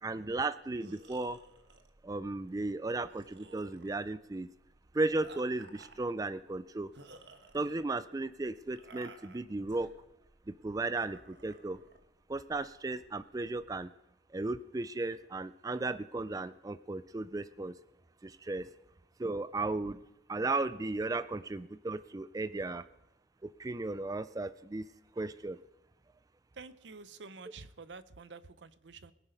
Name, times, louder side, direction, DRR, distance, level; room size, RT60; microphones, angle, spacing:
voice 1, 0.0-1.4 2.0-4.5 4.9-6.9 7.5-9.9 10.5-11.8 12.3-13.9 14.3-17.7 18.2-18.7 19.2-20.0 20.3-22.8 23.4-24.9 25.2-25.6, right 2 dB, 20° right, 14 dB, 0.4 m, -35 dB
sound 1, 0.6-13.7, right 3 dB, 70° right, 1.2 m, -57 dB
voice 2, 26.6-29.1, right 4 dB, 85° right, 14 dB, 0.7 m, -49 dB
22.0 x 8.0 x 5.2 m, 0.90 s
head